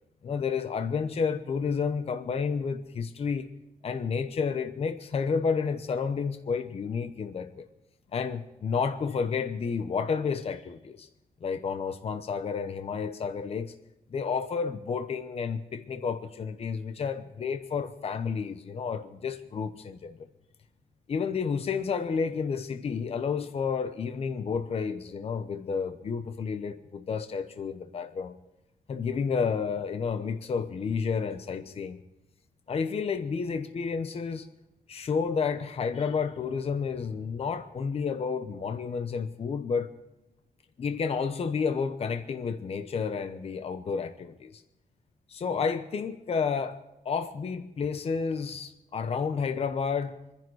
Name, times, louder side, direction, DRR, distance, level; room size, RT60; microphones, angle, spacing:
voice 1, 0.2-3.5 3.8-7.7 8.1-11.1 11.4-13.7 14.1-20.2 21.1-28.4 28.9-32.0 32.7-34.5 34.9-39.9 40.8-44.6 45.3-50.2, left 5 dB, 40° left, 0.9 m, -31 dB
26.0 x 10.5 x 4.8 m
wide cardioid pair, 160°, 16 cm